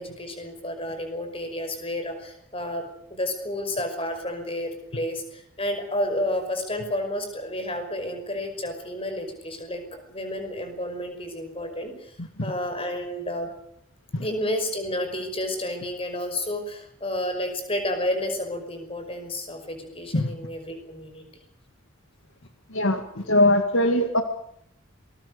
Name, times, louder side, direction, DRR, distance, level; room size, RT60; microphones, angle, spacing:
voice 1, 0.0-2.8 3.1-9.8 10.1-12.1 12.4-13.5 14.2-21.2 23.2-23.3, left 1 dB, 25° left, 6 dB, 5.5 m, -31 dB
voice 2, 22.7-24.2, left 1 dB, 65° left, 7 dB, 2.0 m, -21 dB
27.0 x 21.0 x 6.6 m, 0.70 s
head